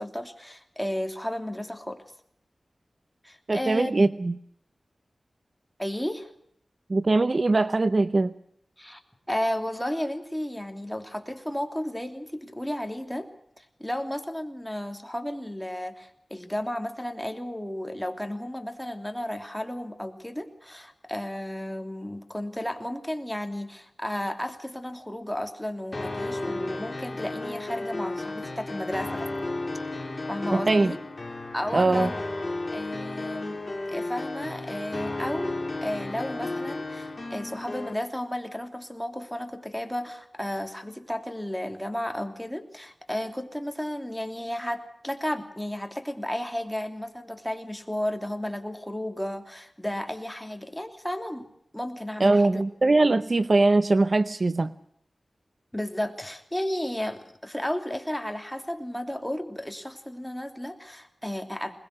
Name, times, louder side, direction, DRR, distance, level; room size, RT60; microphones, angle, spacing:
voice 1, 0.0-2.0 3.2-3.9 5.8-6.3 8.8-9.0 9.3-13.3 13.6-29.3 30.3-31.0 31.5-32.1 32.7-33.6 33.9-51.5 51.7-52.6 55.7-61.8, left 1 dB, 5° left, 5 dB, 3.1 m, -33 dB
voice 2, 3.5-4.4 6.9-8.3 30.5-30.9 31.7-32.1 52.2-54.7, right 2 dB, 50° right, 13 dB, 0.8 m, -21 dB
sound 1, 25.9-37.9, left 2 dB, 40° left, 3.4 m, -33 dB
22.0 x 21.0 x 6.5 m, 0.70 s
wide cardioid pair, 60°, 0 cm